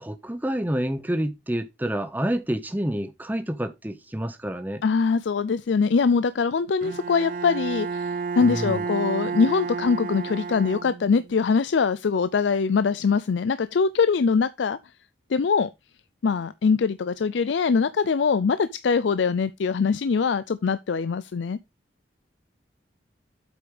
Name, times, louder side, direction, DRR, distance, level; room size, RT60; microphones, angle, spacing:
voice 1, 0.0-4.8 8.4-8.8, right 1 dB, 10° right, 0.7 m, -28 dB
voice 2, 4.8-14.8 15.3-15.7 16.2-21.6, left 5 dB, 75° left, 0.4 m, -23 dB
Bowed string instrument, 6.8-11.3, right 5 dB, 45° right, 0.3 m, -31 dB
7.9 x 5.2 x 4.9 m
head